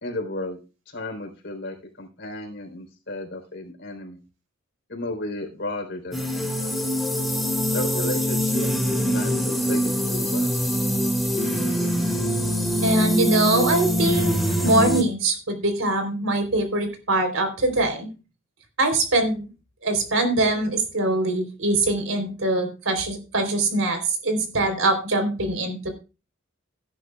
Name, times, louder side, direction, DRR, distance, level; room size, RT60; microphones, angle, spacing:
voice 1, 0.0-0.6 0.9-4.2 4.9-6.8 7.7-10.5, left 2 dB, 55° left, 1 dB, 4.1 m, -34 dB
sound 1, 6.1-15.0, equal, ahead, 2.2 m, -24 dB
voice 2, 12.8-14.3 14.6-18.1 18.8-19.5 19.8-25.9, right 2 dB, 80° right, 6 dB, 3.8 m, -23 dB
17.5 x 10.0 x 2.4 m, 0.31 s
head